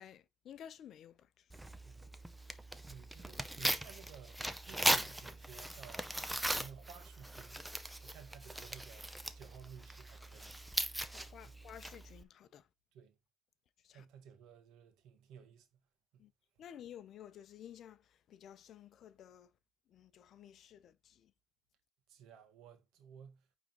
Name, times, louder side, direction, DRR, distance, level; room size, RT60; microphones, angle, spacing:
voice 1, 0.0-1.5 11.1-12.7 13.8-14.1 16.2-16.3 16.6-19.5 19.9-21.3, left 9 dB, 50° left, 0.7 m, -54 dB
Tearing, 1.5-12.2, right 1 dB, 5° right, 0.6 m, -39 dB
voice 2, 1.8-2.2 2.9-6.1 6.5-7.6 8.0-9.1 9.3-10.6 11.4-11.6 12.9-13.1 13.9-15.7 16.1-16.3 22.1-23.6, right 8 dB, 70° right, 1.5 m, -55 dB
9.0 x 3.7 x 3.0 m
cardioid pair, 130°, 0 cm